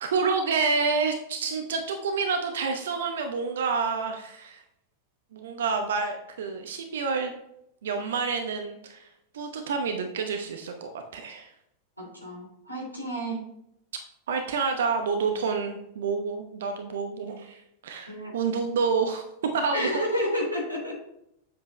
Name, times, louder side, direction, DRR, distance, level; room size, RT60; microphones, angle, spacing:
voice 1, 0.0-4.6 5.3-7.3 7.8-9.1 9.3-11.5 14.3-19.3 19.5-19.9, right 5 dB, 60° right, 5 dB, 0.8 m, -28 dB
voice 2, 12.0-13.4 18.1-18.3 19.7-21.0, equal, 90° right, -2 dB, 3.0 m, -30 dB
8.3 x 7.6 x 3.2 m, 0.78 s
figure-of-eight pair, 90°, 0 cm